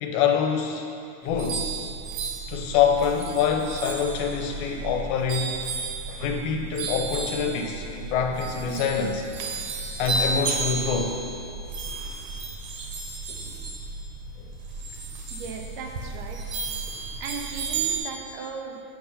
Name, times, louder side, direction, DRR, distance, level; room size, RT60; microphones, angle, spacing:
voice 1, 0.0-0.9 1.2-1.9 2.5-5.6 6.1-9.2 10.0-11.2, left 7 dB, 80° left, 3 dB, 1.9 m, -25 dB
sound 1, 1.2-18.0, right 4 dB, 70° right, 1.8 m, -33 dB
voice 2, 15.3-16.6 17.2-18.8, right 6 dB, 90° right, 2 dB, 2.2 m, -37 dB
7.8 x 4.7 x 5.4 m, 2.6 s
omnidirectional pair, 3.6 m